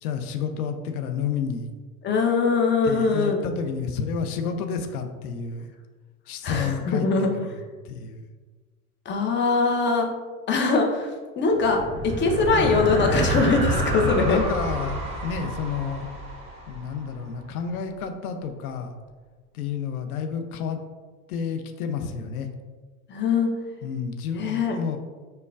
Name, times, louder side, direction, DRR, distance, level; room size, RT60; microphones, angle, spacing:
voice 1, 0.0-1.7 2.8-5.7 6.3-8.2 14.0-16.1 16.7-18.9 19.5-20.8 21.3-22.5 23.8-25.0, left 6 dB, 75° left, 6 dB, 0.6 m, -30 dB
voice 2, 2.0-3.4 6.4-7.3 9.1-10.1 10.5-11.1 11.4-11.8 12.0-14.4 23.1-23.5 24.4-24.8, left 4 dB, 25° left, 2 dB, 0.6 m, -22 dB
sound 1, 11.5-17.2, right 1 dB, 15° right, 1.2 m, -28 dB
5.5 x 2.2 x 2.4 m, 1.4 s
hypercardioid pair, 85°, 44 cm